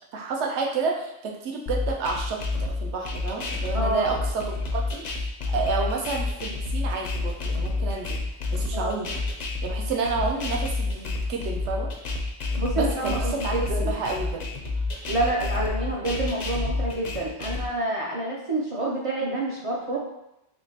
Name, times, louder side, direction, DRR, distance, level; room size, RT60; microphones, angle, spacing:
voice 1, 0.1-8.2 8.5-9.2 9.6-11.9 12.7-14.5, right 4 dB, 85° right, 0 dB, 0.9 m, -30 dB
sound 1, 1.7-17.7, left 3 dB, 55° left, 0.5 m, -29 dB
voice 2, 3.7-4.1 8.7-9.0 12.6-14.0 15.0-20.0, right 2 dB, 50° right, -4 dB, 0.4 m, -28 dB
3.7 x 2.8 x 2.7 m, 0.87 s
omnidirectional pair, 1.1 m